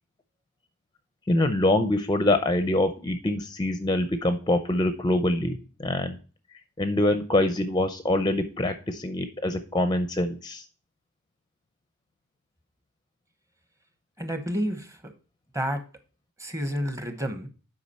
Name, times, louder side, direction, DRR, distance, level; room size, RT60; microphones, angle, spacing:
voice 1, 1.3-6.2 6.8-10.6, left 1 dB, 20° left, 9 dB, 0.5 m, -25 dB
voice 2, 14.2-15.1 15.5-15.8 16.4-17.5, equal, 15° right, 8 dB, 0.9 m, -30 dB
8.3 x 5.0 x 4.2 m, 0.36 s
head